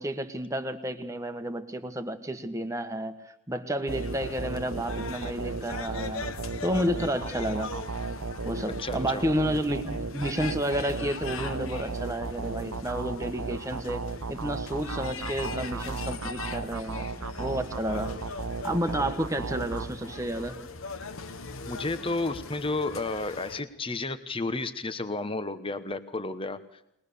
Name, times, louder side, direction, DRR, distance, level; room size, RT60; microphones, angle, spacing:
voice 1, 0.0-3.1 3.5-6.3 6.6-7.8 8.4-17.1 17.4-18.2 18.6-20.6, equal, 15° right, 7 dB, 1.4 m, -31 dB
sound 1, 3.9-23.6, left 4 dB, 70° left, 1.3 m, -41 dB
sound 2, 3.9-20.5, right 4 dB, 90° right, 0.8 m, -35 dB
voice 2, 8.8-9.3 21.6-26.8, left 2 dB, 25° left, 11 dB, 1.2 m, -32 dB
23.0 x 20.0 x 6.9 m, 0.77 s
head